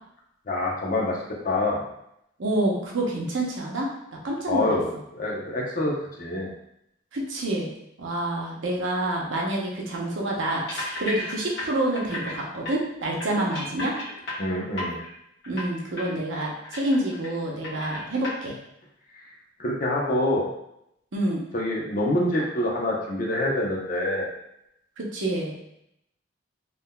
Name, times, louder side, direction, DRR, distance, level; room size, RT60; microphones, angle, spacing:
voice 1, 0.5-1.2 1.4-1.8 4.5-6.5 14.4-15.0 19.1-19.3 19.6-20.5 21.5-24.3, left 1 dB, 45° left, -3 dB, 0.7 m, -26 dB
voice 2, 2.4-3.9 4.2-4.7 7.1-7.7 8.0-14.0 15.5-18.6 21.1-21.4 25.0-25.5, right 1 dB, 85° right, -2 dB, 0.8 m, -27 dB
sound 1, 10.7-12.3 12.6-12.7 13.2-15.1 15.4-15.7 16.0-16.1 16.4-17.4 17.6-18.3, left 1 dB, 65° left, 1.2 m, -34 dB
3.6 x 2.8 x 2.2 m, 0.78 s
head